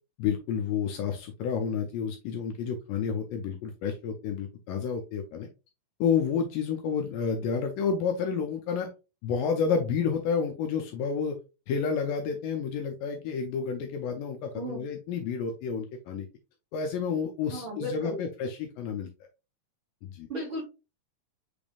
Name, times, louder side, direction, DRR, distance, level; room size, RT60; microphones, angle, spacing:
voice 1, 0.2-5.5 6.0-8.9 9.2-11.4 11.7-16.3 16.7-19.1 20.0-20.3, left 6 dB, 80° left, 3 dB, 2.1 m, -30 dB
voice 2, 17.5-18.2 20.3-20.6, right 1 dB, 60° right, -3 dB, 1.3 m, -34 dB
6.0 x 3.4 x 2.3 m, 0.29 s
omnidirectional pair, 4.4 m